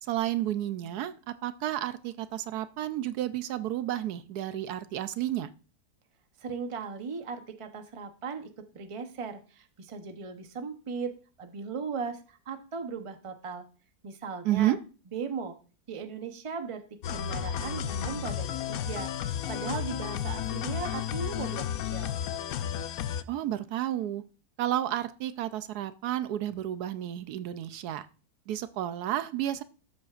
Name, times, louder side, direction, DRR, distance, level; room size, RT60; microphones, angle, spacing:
voice 1, 0.0-5.5 14.4-14.8 23.3-24.2 24.6-28.1 28.5-29.6, right 12 dB, 80° right, 13 dB, 1.1 m, -31 dB
voice 2, 6.4-11.1 11.4-13.6 14.0-14.8 15.1-15.6 15.9-16.8 17.1-22.1, right 5 dB, 30° right, 7 dB, 0.7 m, -37 dB
sound 1, 17.0-23.2, left 9 dB, 70° left, 1.0 m, -33 dB
13.0 x 7.7 x 2.5 m, 0.36 s
omnidirectional pair, 1.7 m